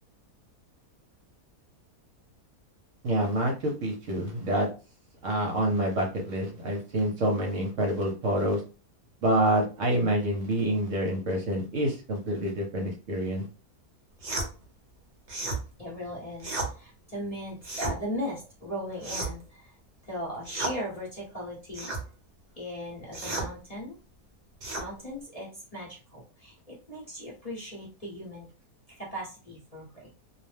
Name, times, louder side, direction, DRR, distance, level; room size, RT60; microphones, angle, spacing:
voice 1, 3.0-4.7 5.2-8.6 9.2-13.5, right 1 dB, 60° right, 1 dB, 0.9 m, -27 dB
sound 1, 14.2-14.5 15.3-15.6 16.4-16.7 17.6-18.0 19.0-19.5 20.4-20.8 21.7-22.0 23.1-23.5 24.6-24.9, right 2 dB, 40° right, 0.7 m, -32 dB
voice 2, 15.8-19.8 20.0-21.9 22.6-24.0 24.8-28.5 28.9-30.1, equal, 30° left, -6 dB, 0.7 m, -38 dB
2.6 x 2.1 x 3.2 m, 0.33 s
omnidirectional pair, 1.6 m